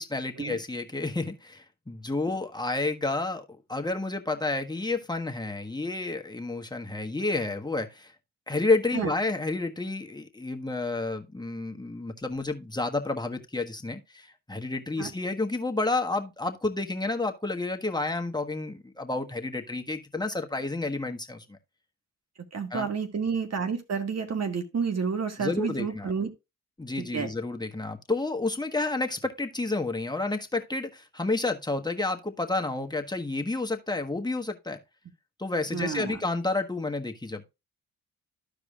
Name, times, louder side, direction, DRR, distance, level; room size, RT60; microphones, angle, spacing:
voice 1, 0.0-8.1 8.5-21.6 22.7-22.9 25.4-26.1 26.8-34.8 35.4-37.4, left 2 dB, 10° left, 1.4 m, -30 dB
voice 2, 22.5-26.3 27.1-27.3 35.7-36.2, right 5 dB, 50° right, 1.6 m, -30 dB
14.0 x 4.9 x 2.4 m
supercardioid pair, 55°, 33 cm